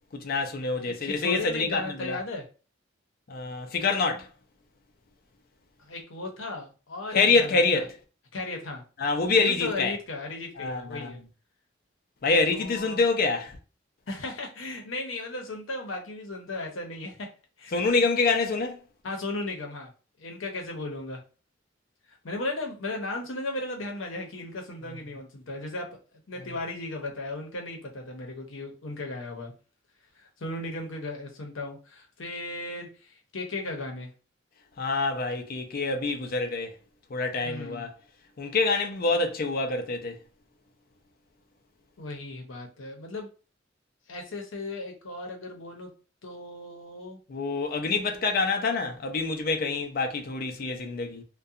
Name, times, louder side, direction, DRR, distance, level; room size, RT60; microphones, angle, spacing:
voice 1, 0.1-2.2 3.3-4.3 7.1-7.9 9.0-9.9 10.6-11.1 12.2-13.6 17.7-18.8 24.9-25.0 34.8-36.7 37.1-38.0 38.4-40.2 47.3-51.2, left 3 dB, 50° left, 0.4 m, -26 dB
voice 2, 0.8-2.4 5.8-7.8 8.3-8.8 9.4-11.2 12.5-13.0 14.1-17.3 17.6-17.7 19.0-19.9 20.2-21.2 22.1-25.9 26.3-29.5 30.1-34.1 37.4-37.9 42.0-43.3 44.1-45.9 46.2-47.2, left 2 dB, 85° left, 0.7 m, -36 dB
2.7 x 2.2 x 2.4 m
head